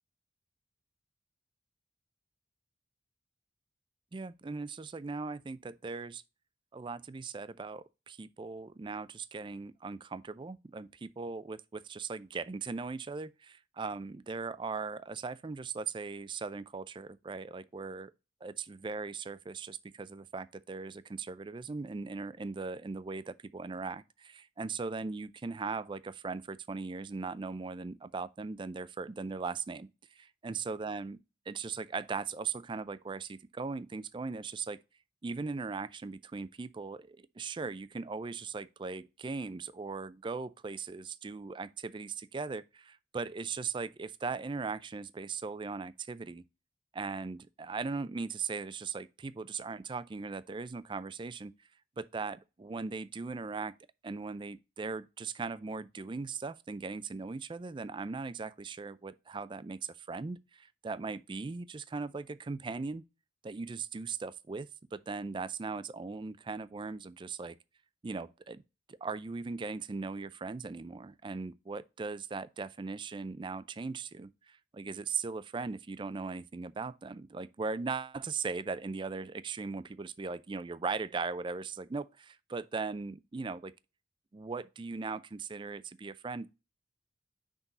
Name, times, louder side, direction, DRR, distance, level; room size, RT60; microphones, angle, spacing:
voice 1, 4.1-6.2 6.7-18.1 18.4-34.8 35.2-46.4 46.9-51.5 52.0-53.7 54.0-63.0 63.4-67.6 68.0-68.6 68.9-83.7 84.3-86.5, right 4 dB, 25° right, 0.3 m, -39 dB
5.9 x 3.9 x 4.0 m
head